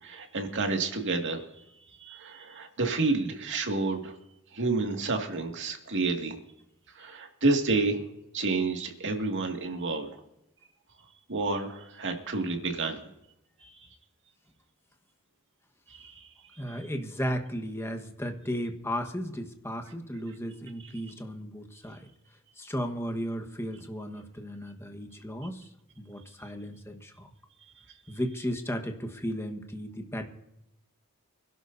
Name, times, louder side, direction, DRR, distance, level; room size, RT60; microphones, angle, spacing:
voice 1, 0.0-1.4 2.0-4.1 4.5-6.3 7.0-8.0 8.3-10.1 11.3-13.0 13.6-13.7 15.9-16.2, right 3 dB, 55° right, 3 dB, 2.2 m, -29 dB
voice 2, 16.6-22.1 22.6-25.7 26.0-27.3 28.1-30.3, equal, 10° left, 4 dB, 1.3 m, -35 dB
25.5 x 12.0 x 2.7 m, 0.84 s
head